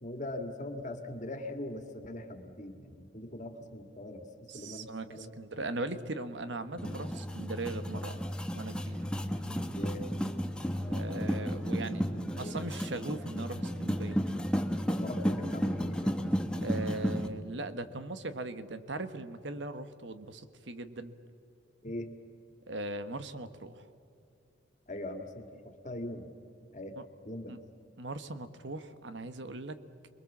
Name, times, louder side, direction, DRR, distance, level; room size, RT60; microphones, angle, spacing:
voice 1, 0.0-4.3 4.5-5.3 9.7-10.1 11.8-12.6 14.9-16.2 21.8-22.1 24.9-26.3 26.7-27.0 27.3-27.5, left 1 dB, 40° left, 6 dB, 2.0 m, -41 dB
voice 2, 4.5-8.2 8.5-9.1 10.9-12.0 12.4-14.2 16.6-21.1 22.7-23.8 27.0-27.1 27.5-27.6 28.0-29.8, right 2 dB, 70° right, 11 dB, 1.3 m, -39 dB
sound 1, 6.8-17.3, equal, 5° left, 1.1 m, -33 dB
28.0 x 21.5 x 7.3 m, 2.5 s
head